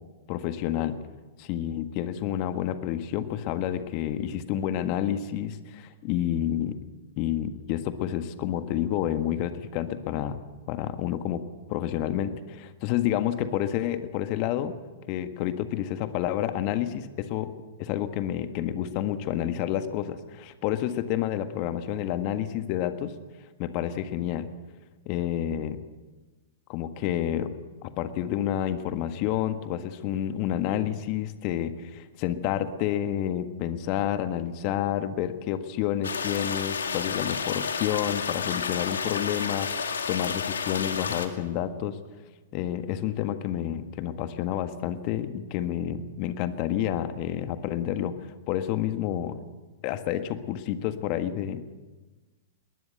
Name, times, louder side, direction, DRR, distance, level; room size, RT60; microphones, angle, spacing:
voice 1, 0.3-1.0 1.4-6.8 7.2-10.4 10.7-11.4 11.7-14.8 15.1-17.5 17.8-23.1 23.6-24.5 25.0-25.8 26.7-27.5 27.8-42.0 42.5-48.2 48.5-49.4 49.8-51.7, left 11 dB, 40° left, 9 dB, 1.6 m, -29 dB
sound 1, 36.0-41.3, left 6 dB, 75° left, 2.2 m, -31 dB
21.5 x 19.5 x 8.0 m, 1.3 s
figure-of-eight pair, 105°, 0 cm